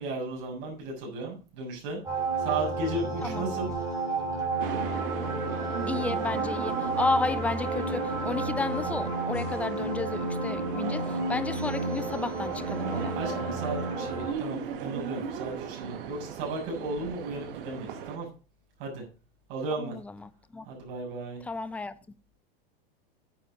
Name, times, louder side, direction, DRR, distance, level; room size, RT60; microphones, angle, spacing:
voice 1, 0.0-2.0 2.4-3.7 13.1-18.3 18.8-19.0 19.5-19.9 20.7-21.4, right 2 dB, 50° right, 7.0 m, -35 dB
sound 1, 2.0-14.3, right 2 dB, 10° right, 5.0 m, -31 dB
sound 2, 4.6-18.2, right 7 dB, 65° right, 2.1 m, -37 dB
voice 2, 5.9-13.2 19.8-20.6 21.4-21.9, left 3 dB, 5° left, 0.5 m, -32 dB
9.7 x 8.9 x 5.1 m
supercardioid pair, 140°, 30 cm